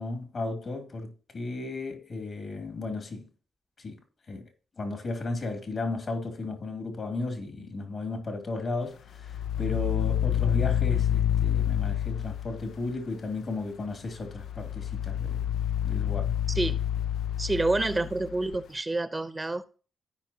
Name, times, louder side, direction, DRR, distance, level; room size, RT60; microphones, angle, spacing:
voice 1, 0.0-3.3 3.8-4.0 4.3-4.5 4.8-15.5 15.8-16.4, left 3 dB, 55° left, 2.9 m, -34 dB
sound 1, 9.2-12.9 14.2-18.6, left 10 dB, 75° left, 0.4 m, -28 dB
voice 2, 16.5-16.8 17.4-19.8, right 2 dB, 25° right, 0.8 m, -28 dB
15.0 x 5.3 x 2.9 m
hypercardioid pair, 45°, 0 cm